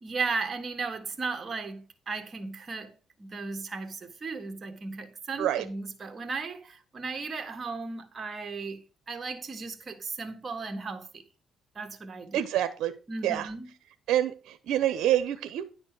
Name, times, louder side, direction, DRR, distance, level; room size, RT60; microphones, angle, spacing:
voice 1, 0.0-2.9 3.2-8.8 9.1-11.1 11.8-12.4 13.1-13.7, right 4 dB, 35° right, 1.7 m, -35 dB
voice 2, 12.3-12.9 13.2-13.5 14.1-15.6, right 11 dB, 80° right, 0.7 m, -27 dB
10.0 x 4.4 x 6.0 m
cardioid pair, 90°, 0 cm